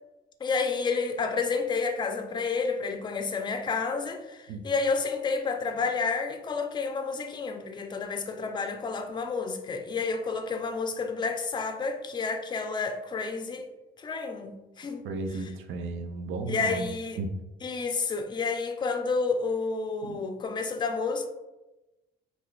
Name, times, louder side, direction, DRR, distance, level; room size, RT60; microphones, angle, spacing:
voice 1, 0.4-13.7 14.0-15.1 15.3-15.4 16.5-17.2 17.6-21.3, left 4 dB, 25° left, 0.4 m, -30 dB
voice 2, 15.0-16.9 17.2-17.3 20.0-20.2, right 3 dB, 85° right, 0.4 m, -34 dB
2.4 x 2.4 x 3.7 m
cardioid pair, 90°, 20 cm